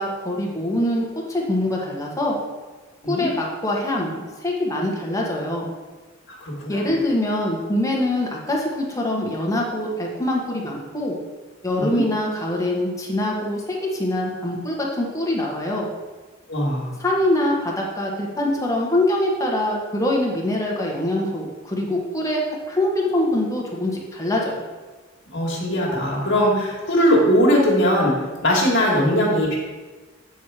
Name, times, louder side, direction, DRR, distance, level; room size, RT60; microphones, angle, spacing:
voice 1, 0.0-2.3 3.0-5.7 6.7-11.1 11.6-15.9 17.0-24.7, left 1 dB, 15° left, -2 dB, 1.3 m, -24 dB
voice 2, 6.4-6.9 11.8-12.0 16.5-16.9 25.3-28.1 28.4-29.6, equal, 65° left, -4 dB, 1.7 m, -20 dB
8.2 x 4.5 x 4.8 m, 1.3 s
head